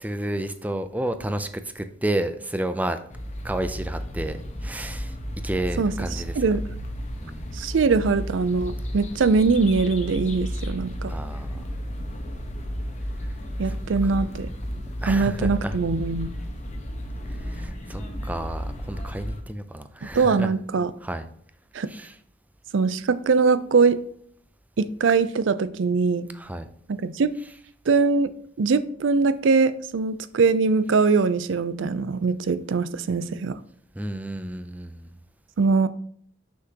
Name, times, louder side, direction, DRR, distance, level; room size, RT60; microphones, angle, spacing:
voice 1, 0.0-3.0 3.4-5.2 5.4-6.4 7.2-7.5 11.1-11.6 13.7-13.8 14.0-14.1 15.0-15.8 17.4-20.5 21.0-21.3 21.9-22.1 26.3-26.7 33.9-35.1, right 1 dB, 10° right, 0.4 m, -31 dB
sound 1, 3.1-19.4, equal, 40° left, 1.0 m, -33 dB
voice 2, 7.5-11.1 13.6-14.5 15.1-16.3 20.1-20.9 21.7-21.9 22.7-24.0 24.8-26.3 26.9-27.3 27.9-33.6 35.6-35.9, right 4 dB, 70° right, 0.5 m, -22 dB
6.2 x 5.8 x 2.9 m
head